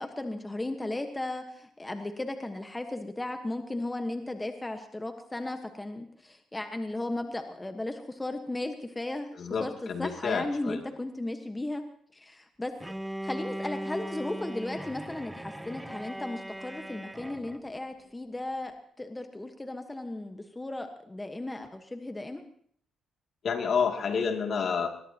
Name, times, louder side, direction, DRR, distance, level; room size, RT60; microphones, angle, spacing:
voice 1, 0.0-11.8 12.1-12.7 13.2-22.4, left 2 dB, 15° left, 6 dB, 1.3 m, -36 dB
voice 2, 9.4-10.8 23.4-24.9, left 6 dB, 55° left, 3 dB, 2.5 m, -29 dB
Bowed string instrument, 12.8-17.7, right 1 dB, 5° right, 0.7 m, -38 dB
21.5 x 20.5 x 2.9 m, 0.62 s
cardioid pair, 90°, 0 cm